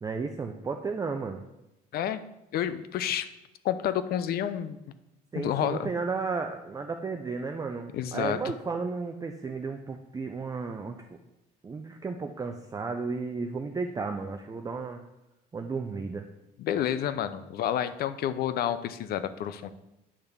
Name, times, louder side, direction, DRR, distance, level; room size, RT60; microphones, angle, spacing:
voice 1, 0.0-1.4 5.3-11.0 11.6-15.0 15.5-16.3, right 4 dB, 20° right, 4 dB, 0.5 m, -33 dB
voice 2, 2.5-3.3 3.6-4.8 5.3-5.9 7.9-8.4 16.6-19.7, left 10 dB, 65° left, 13 dB, 0.6 m, -29 dB
8.7 x 3.5 x 6.7 m, 0.92 s
cardioid pair, 110°, 17 cm